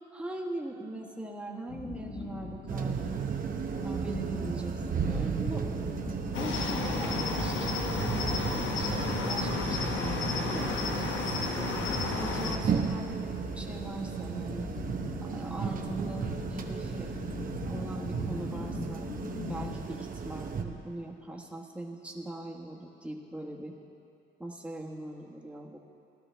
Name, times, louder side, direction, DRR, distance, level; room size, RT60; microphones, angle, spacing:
voice 1, 0.1-3.2 3.8-5.8 6.3-14.7 15.2-17.1 17.6-19.1 19.5-23.7 24.4-25.8, right 1 dB, 5° right, -1 dB, 1.3 m, -41 dB
sound 1, 1.7-19.8, left 3 dB, 45° left, 1.2 m, -41 dB
sound 2, 2.7-20.6, right 6 dB, 45° right, 0.9 m, -35 dB
Cricket, 6.3-12.6, left 4 dB, 75° left, 1.2 m, -32 dB
16.0 x 11.5 x 3.4 m, 2.6 s
cardioid pair, 90°, 20 cm